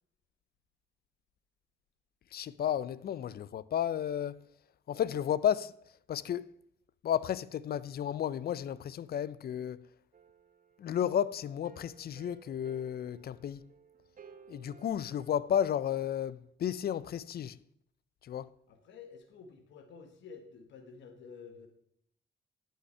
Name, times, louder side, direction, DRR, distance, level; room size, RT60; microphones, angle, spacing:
voice 1, 2.3-4.4 4.9-5.7 6.1-6.5 7.0-9.9 10.8-13.6 14.5-17.6 18.2-18.5, left 9 dB, 60° left, 0.5 m, -33 dB
sound 1, 10.1-15.3, right 6 dB, 50° right, 0.9 m, -57 dB
voice 2, 18.7-21.7, left 5 dB, 80° left, 1.3 m, -51 dB
11.5 x 5.7 x 5.5 m
cardioid pair, 70°, 18 cm